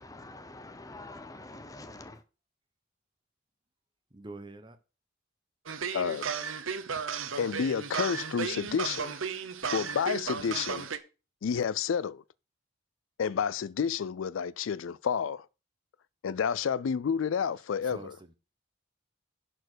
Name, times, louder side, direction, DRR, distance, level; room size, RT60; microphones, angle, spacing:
voice 1, 0.0-2.2, left 2 dB, 15° left, 0.7 m, -46 dB
voice 2, 4.1-4.8 17.9-18.4, right 2 dB, 25° right, 1.0 m, -45 dB
sound 1, 5.7-11.0, right 6 dB, 85° right, 1.0 m, -34 dB
voice 3, 5.9-6.3 7.4-9.1 9.7-10.9 11.4-12.2 13.2-15.5 16.2-18.2, left 7 dB, 85° left, 0.4 m, -30 dB
11.0 x 4.5 x 6.3 m
head